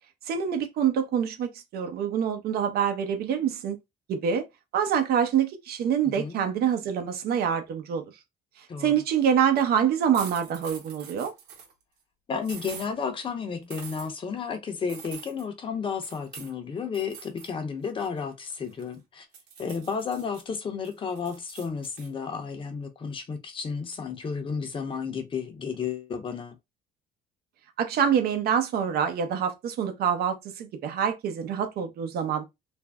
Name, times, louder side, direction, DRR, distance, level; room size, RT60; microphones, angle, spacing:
voice 1, 0.3-3.8 4.1-4.4 4.7-8.0 8.6-11.3 27.8-32.4, right 8 dB, 65° right, 0.7 m, -26 dB
voice 2, 6.0-6.4 8.7-8.9 12.3-19.3 19.6-26.6, left 5 dB, 30° left, 0.7 m, -32 dB
sound 1, 10.1-11.7 12.4-12.9 13.7-14.1 14.9-15.5 16.0-16.5 16.9-17.5 17.8-19.0 19.3-20.4 20.8-22.1, right 7 dB, 90° right, 1.0 m, -44 dB
2.5 x 2.0 x 3.4 m
cardioid pair, 110°, 17 cm